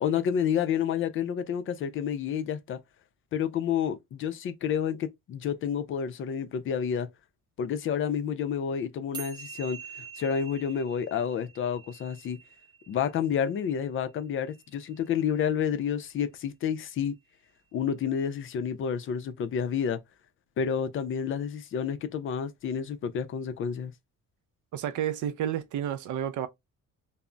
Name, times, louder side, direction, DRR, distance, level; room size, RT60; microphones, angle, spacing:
voice 1, 0.0-2.8 3.3-7.1 7.6-12.4 12.9-17.1 17.7-20.0 20.6-23.9, left 8 dB, 40° left, 0.4 m, -29 dB
sound 1, 9.1-15.7, right 7 dB, 15° right, 0.6 m, -46 dB
voice 2, 24.7-26.5, right 10 dB, 65° right, 0.5 m, -30 dB
2.2 x 2.0 x 3.6 m
cardioid pair, 150°, 32 cm